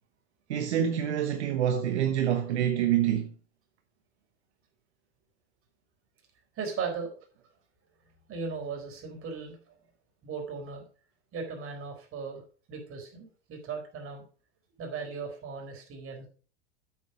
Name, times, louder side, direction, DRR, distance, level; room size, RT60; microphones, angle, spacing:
voice 1, 0.5-3.3, right 10 dB, 75° right, 1.2 m, -26 dB
voice 2, 6.6-7.1 8.3-9.6 10.2-10.8 11.3-12.4 12.7-14.2 14.8-16.3, right 5 dB, 40° right, 4.2 m, -37 dB
8.2 x 7.4 x 4.8 m
hypercardioid pair, 90°, 34 cm